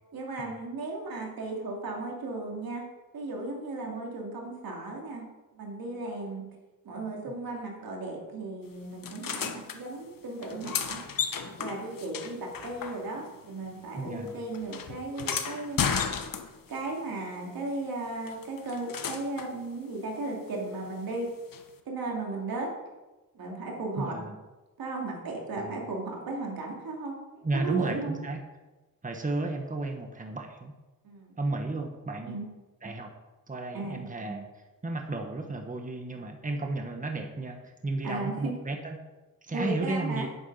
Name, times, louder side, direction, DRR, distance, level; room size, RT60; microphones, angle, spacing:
voice 1, 0.1-2.9 3.1-5.2 5.5-6.4 6.8-11.0 11.5-15.8 16.7-21.3 21.8-22.7 23.3-24.1 24.8-28.2 31.0-31.4 32.3-32.5 33.7-34.1 38.0-38.5 39.5-40.3, right 2 dB, 85° right, -1 dB, 3.1 m, -35 dB
sound 1, 9.0-9.8 10.4-13.4 13.6-16.8 18.3-19.5 21.5-21.6, left 7 dB, 70° left, 1.2 m, -34 dB
voice 2, 13.9-14.3 24.0-24.4 25.6-25.8 27.4-28.4 29.0-30.7 31.4-32.4 32.8-33.1 33.5-34.5 34.8-39.0 39.4-40.3, right 2 dB, 25° right, 4 dB, 1.4 m, -33 dB
10.0 x 9.2 x 5.7 m, 1.1 s
cardioid pair, 95°, 34 cm